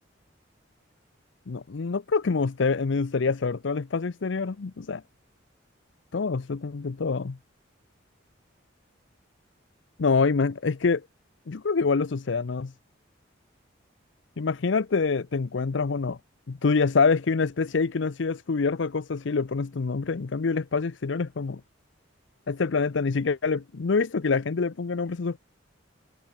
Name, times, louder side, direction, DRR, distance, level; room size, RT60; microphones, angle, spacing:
voice 1, 1.5-5.0 6.1-7.4 10.0-11.0 11.5-12.7 14.4-16.2 16.5-21.6 22.5-25.4, left 4 dB, 70° left, 0.6 m, -26 dB
head